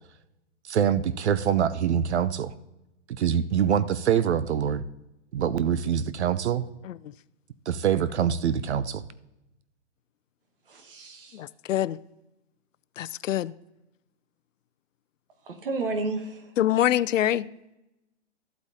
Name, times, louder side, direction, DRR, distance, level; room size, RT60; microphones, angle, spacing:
voice 1, 0.6-2.5 3.2-4.8 5.3-6.6 7.7-9.0, right 8 dB, 65° right, 0.6 m, -24 dB
voice 2, 10.7-11.4 15.4-16.6, right 3 dB, 45° right, 1.3 m, -32 dB
voice 3, 11.4-12.0 13.0-13.5 16.6-17.5, left 12 dB, 85° left, 0.5 m, -24 dB
14.5 x 8.3 x 2.8 m
hypercardioid pair, 180°, 37 cm